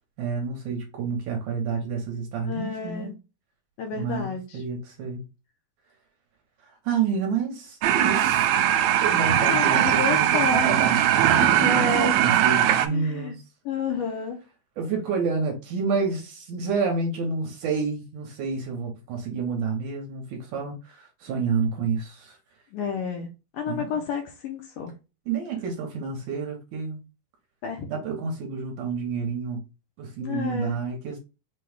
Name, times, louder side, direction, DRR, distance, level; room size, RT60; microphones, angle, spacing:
voice 1, 0.2-3.1 3.9-5.2 6.6-8.7 9.0-11.9 12.1-13.4 14.8-22.4 23.7-23.9 25.3-27.0 27.9-29.6 30.0-31.2, right 5 dB, 70° right, 2.1 m, -29 dB
voice 2, 2.4-3.1 3.8-4.6 9.4-10.7 11.4-12.2 12.9-13.4 13.7-14.4 22.7-23.3 23.5-24.9 27.6-27.9 30.2-30.8, left 5 dB, 75° left, 2.0 m, -30 dB
sound 1, 7.8-12.9, right 11 dB, 85° right, 1.9 m, -20 dB
5.9 x 2.3 x 3.4 m
omnidirectional pair, 4.2 m